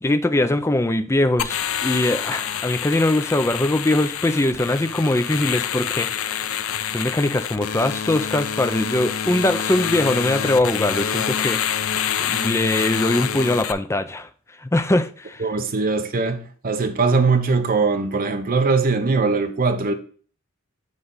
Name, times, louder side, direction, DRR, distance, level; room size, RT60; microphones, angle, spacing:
voice 1, 0.0-6.4 6.9-11.6 12.2-14.3 14.7-15.4, left 1 dB, 15° left, 0.5 m, -21 dB
sound 1, 1.4-13.7, left 8 dB, 70° left, 0.5 m, -27 dB
voice 2, 15.4-19.9, right 4 dB, 45° right, 0.7 m, -21 dB
8.0 x 3.8 x 5.4 m
head